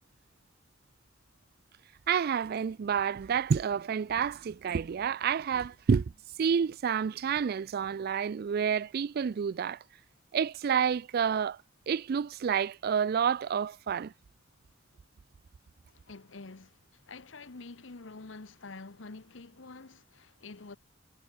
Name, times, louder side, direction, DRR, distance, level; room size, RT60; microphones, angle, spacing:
voice 1, 2.1-6.1 6.4-9.8 10.3-11.6 11.9-14.1, right 7 dB, 50° right, 0.4 m, -29 dB
voice 2, 15.9-20.8, left 3 dB, 70° left, 1.1 m, -47 dB
head